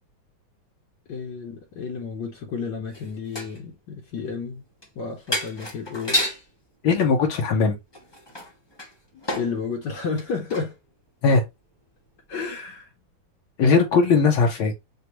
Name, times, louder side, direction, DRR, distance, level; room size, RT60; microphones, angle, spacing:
voice 1, 1.1-4.6 5.0-6.2 9.1-10.7 12.3-12.9, left 5 dB, 65° left, 1.5 m, -31 dB
sound 1, 2.9-3.6 4.8-4.9 5.3-6.5 7.9-9.6 10.0-10.7 11.3-11.4, left 1 dB, 30° left, 0.4 m, -30 dB
voice 2, 6.8-7.8 11.2-11.4 13.6-14.7, left 4 dB, 80° left, 1.8 m, -19 dB
6.4 x 2.4 x 2.9 m
omnidirectional pair, 2.2 m